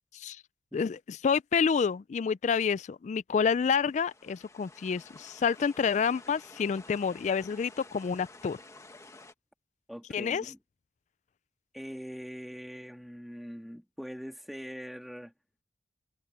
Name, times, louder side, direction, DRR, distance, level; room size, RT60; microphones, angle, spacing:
voice 1, 0.7-8.6 10.1-10.4, left 6 dB, 40° left, 0.3 m, -28 dB
sound 1, 3.8-9.3, left 2 dB, 15° left, 1.2 m, -52 dB
voice 2, 9.9-10.6 11.7-15.3, equal, ahead, 1.7 m, -42 dB
head